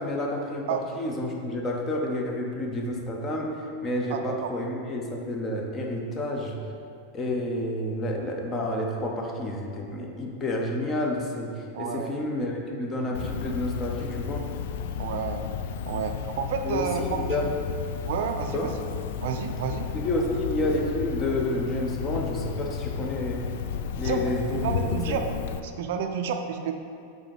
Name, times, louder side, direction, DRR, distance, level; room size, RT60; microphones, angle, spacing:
voice 1, 0.0-3.5 3.8-6.6 7.1-14.4 16.6-17.5 18.5-18.7 19.9-23.5 24.0-25.2, left 1 dB, 25° left, 1 dB, 0.9 m, -30 dB
voice 2, 4.1-4.5 11.7-12.1 15.0-15.5 15.9-17.2 18.1-18.7 19.2-19.9 24.0-24.2 24.5-25.2 25.6-26.7, right 7 dB, 55° right, 6 dB, 0.4 m, -30 dB
Cricket, 13.1-25.6, left 7 dB, 55° left, 0.3 m, -33 dB
7.5 x 4.0 x 4.6 m, 2.5 s
figure-of-eight pair, 90°, 0 cm